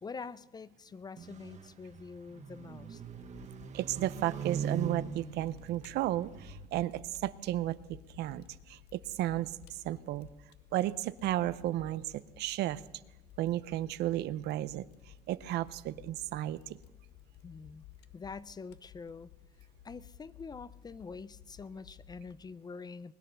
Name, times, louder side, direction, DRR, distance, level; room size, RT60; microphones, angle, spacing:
voice 1, 0.0-3.0 17.4-17.8 18.1-19.3 19.6-23.1, left 4 dB, 25° left, 18 dB, 0.5 m, -45 dB
sound 1, 1.2-6.7, right 6 dB, 45° right, 1.2 m, -41 dB
Fire, 3.0-22.3, left 10 dB, 85° left, 0.8 m, -56 dB
voice 2, 3.7-10.3 10.7-12.8 13.4-14.9 15.3-16.8, right 14 dB, 80° right, 16 dB, 0.6 m, -33 dB
20.5 x 10.0 x 6.8 m, 1.1 s
cardioid pair, 110°, 17 cm